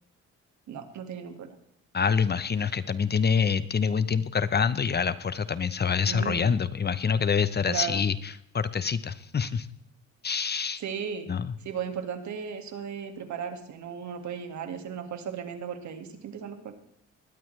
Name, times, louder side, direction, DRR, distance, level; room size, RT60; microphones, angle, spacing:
voice 1, 0.7-1.5 6.0-6.5 7.7-8.0 10.8-11.3 11.6-16.7, right 7 dB, 70° right, 7 dB, 2.1 m, -35 dB
voice 2, 1.9-9.7 10.2-10.8 11.3-11.6, left 6 dB, 35° left, 15 dB, 0.8 m, -26 dB
20.0 x 13.5 x 3.3 m, 0.70 s
cardioid pair, 90°, 30 cm